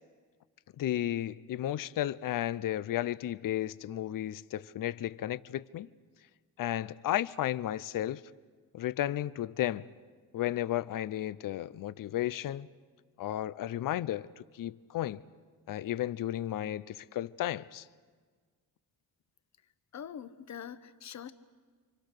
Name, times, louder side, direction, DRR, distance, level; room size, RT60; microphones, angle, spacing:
voice 1, 0.8-5.9 6.6-8.2 8.7-9.9 10.3-12.7 13.2-15.2 15.7-17.8, left 13 dB, 65° left, 0.6 m, -33 dB
voice 2, 19.9-21.3, left 8 dB, 50° left, 1.1 m, -43 dB
29.0 x 25.5 x 6.6 m
wide cardioid pair, 150°, 35 cm